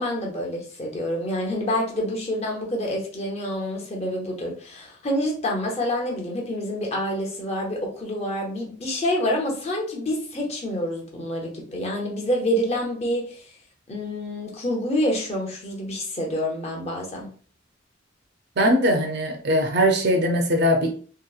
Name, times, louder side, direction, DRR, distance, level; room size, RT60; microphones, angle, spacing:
voice 1, 0.0-13.4 13.9-17.3, left 1 dB, 35° left, -1 dB, 0.7 m, -27 dB
voice 2, 18.6-21.0, equal, 60° right, 2 dB, 0.5 m, -20 dB
2.8 x 2.0 x 2.3 m, 0.43 s
head